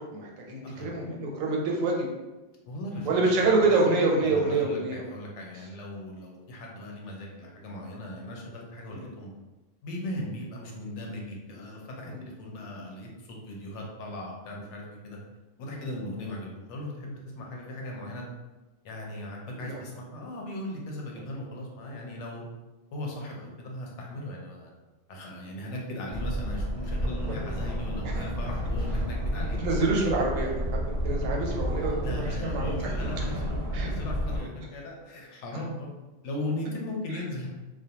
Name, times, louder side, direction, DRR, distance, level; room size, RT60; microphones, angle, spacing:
voice 1, 0.0-2.1 3.1-5.0 8.9-9.0 12.1-12.2 15.8-15.9 19.5-19.8 27.3-27.4 28.0-28.3 29.4-32.9 33.7-33.9, right 3 dB, 85° right, -1 dB, 1.0 m, -27 dB
voice 2, 0.6-0.9 2.7-3.1 3.4-3.8 4.2-9.3 9.8-15.2 15.6-18.2 18.8-22.4 22.9-24.7 25.1-29.6 32.0-35.9 36.2-37.5, left 1 dB, 70° left, -1 dB, 0.8 m, -38 dB
sound 1, 26.1-34.4, equal, 55° right, 0.7 m, -31 dB
2.4 x 2.1 x 2.8 m, 1.1 s
omnidirectional pair, 1.3 m